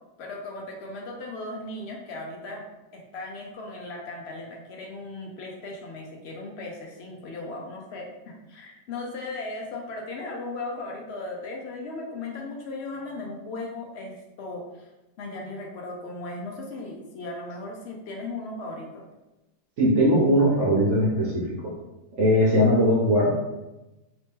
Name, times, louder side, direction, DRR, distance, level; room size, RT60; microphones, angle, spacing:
voice 1, 0.2-2.6 2.9-14.9 15.2-19.0, left 2 dB, 75° left, 0 dB, 0.5 m, -37 dB
voice 2, 19.8-21.7 22.2-23.3, equal, 55° right, -5 dB, 1.0 m, -20 dB
3.1 x 2.7 x 3.5 m, 1.0 s
omnidirectional pair, 1.8 m